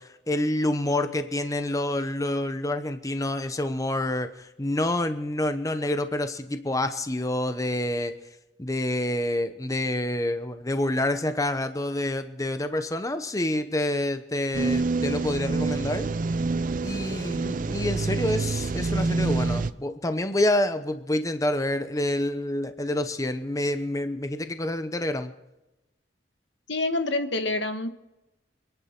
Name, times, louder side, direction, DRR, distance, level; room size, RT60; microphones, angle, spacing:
voice 1, 0.0-8.1 8.6-16.1 16.8-25.3, left 1 dB, 20° left, 9 dB, 0.9 m, -27 dB
sound 1, 14.5-19.7, right 3 dB, 50° right, 0.5 m, -27 dB
voice 2, 26.7-27.9, left 2 dB, 85° left, 8 dB, 1.5 m, -27 dB
27.0 x 10.5 x 4.5 m, 0.97 s
head